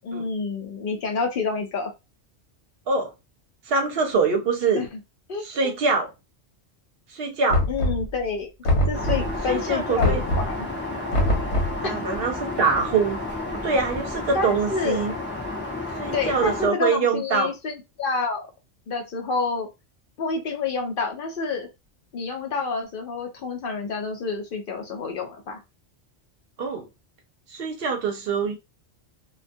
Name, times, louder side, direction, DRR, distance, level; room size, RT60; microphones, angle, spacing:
voice 1, 0.0-1.9 4.7-4.9 5.3-5.4 7.7-8.5 8.9-10.6 11.8-12.0 14.3-15.1 16.1-18.5 18.9-19.7 20.2-21.7 22.1-25.6, left 4 dB, 60° left, 0.7 m, -28 dB
voice 2, 3.7-4.8 5.4-6.1 7.1-7.6 9.5-10.2 11.8-13.2 13.5-15.1 16.0-17.5 26.6-26.9 27.5-28.6, right 4 dB, 65° right, 0.7 m, -24 dB
Knock, 7.5-8.2 8.6-9.4 10.0-10.6 11.1-11.8, left 1 dB, 80° left, 1.0 m, -23 dB
Aircraft, 8.9-16.7, left 2 dB, 15° left, 0.5 m, -32 dB
2.2 x 2.2 x 2.5 m
omnidirectional pair, 1.2 m